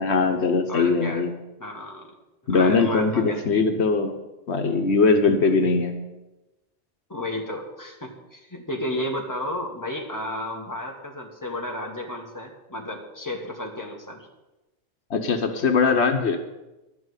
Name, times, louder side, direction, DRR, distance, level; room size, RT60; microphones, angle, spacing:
voice 1, 0.0-1.3 2.5-4.2 4.5-5.9 15.1-16.4, left 4 dB, 80° left, 6 dB, 1.3 m, -21 dB
voice 2, 0.7-1.2 1.6-2.2 2.5-3.7 7.1-14.3, left 1 dB, 15° left, 1 dB, 1.9 m, -33 dB
13.0 x 6.1 x 9.7 m, 1.0 s
omnidirectional pair, 1.1 m